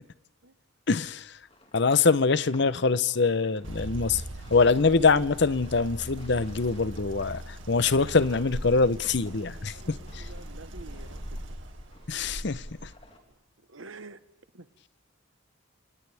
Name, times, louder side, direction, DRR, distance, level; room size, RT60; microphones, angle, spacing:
voice 1, 0.9-1.4 1.7-4.2 4.5-10.3 12.1-12.9, left 4 dB, 60° left, 0.8 m, -24 dB
sound 1, 1.5-13.4, left 2 dB, 30° left, 3.8 m, -56 dB
sound 2, 3.6-12.9, right 1 dB, 70° right, 2.3 m, -40 dB
voice 2, 9.2-11.5 13.3-14.2 14.5-14.7, right 3 dB, 90° right, 1.3 m, -49 dB
29.5 x 28.0 x 3.5 m
head